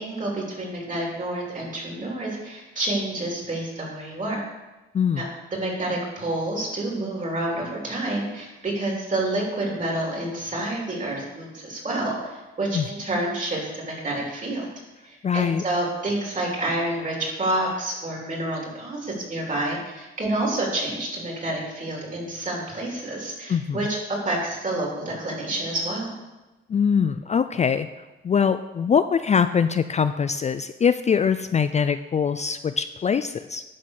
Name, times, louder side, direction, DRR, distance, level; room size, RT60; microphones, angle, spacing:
voice 1, 0.0-4.4 5.2-14.7 15.0-24.0 24.3-26.1, right 1 dB, 40° right, -2 dB, 3.4 m, -28 dB
voice 2, 15.2-15.6 23.5-23.9 26.7-27.9 28.2-33.6, left 7 dB, 35° left, 11 dB, 0.4 m, -23 dB
11.0 x 4.1 x 6.6 m, 1.1 s
cardioid pair, 80°, 21 cm